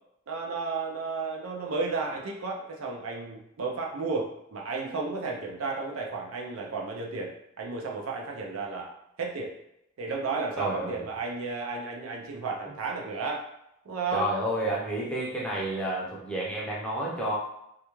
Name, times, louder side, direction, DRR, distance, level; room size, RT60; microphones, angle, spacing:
voice 1, 0.3-8.9 9.2-9.5 10.0-13.4 13.9-14.3, right 4 dB, 70° right, -1 dB, 0.5 m, -33 dB
voice 2, 10.6-11.0 14.1-17.4, right 1 dB, 5° left, -5 dB, 0.5 m, -30 dB
2.4 x 2.1 x 3.0 m, 0.79 s
head